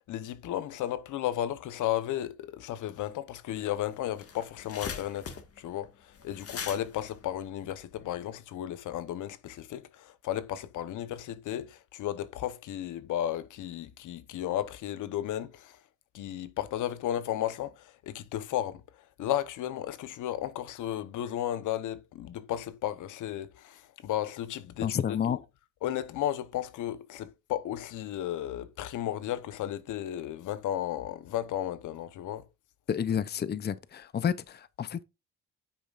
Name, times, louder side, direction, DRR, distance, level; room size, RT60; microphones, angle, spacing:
voice 1, 0.1-5.3 5.6-15.8 16.1-25.0 25.3-25.4 25.8-32.4, left 12 dB, 80° left, 1.0 m, -34 dB
sound 1, 3.6-3.7 4.0-8.2, left 6 dB, 50° left, 1.8 m, -41 dB
voice 2, 24.8-25.4 32.9-35.0, left 8 dB, 35° left, 0.6 m, -30 dB
9.5 x 7.2 x 2.5 m
cardioid pair, 90°, 30 cm